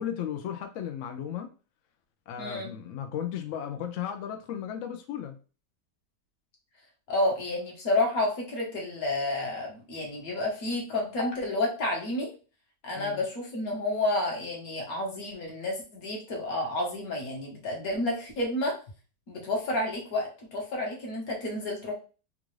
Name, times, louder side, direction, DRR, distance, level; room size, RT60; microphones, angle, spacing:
voice 1, 0.0-1.5 2.3-5.4 13.0-13.2, left 9 dB, 80° left, 5 dB, 0.7 m, -35 dB
voice 2, 2.4-2.7 7.1-12.3 12.8-18.8 19.3-21.9, left 2 dB, 55° left, 0 dB, 1.5 m, -30 dB
3.7 x 2.4 x 3.1 m, 0.35 s
omnidirectional pair, 1.9 m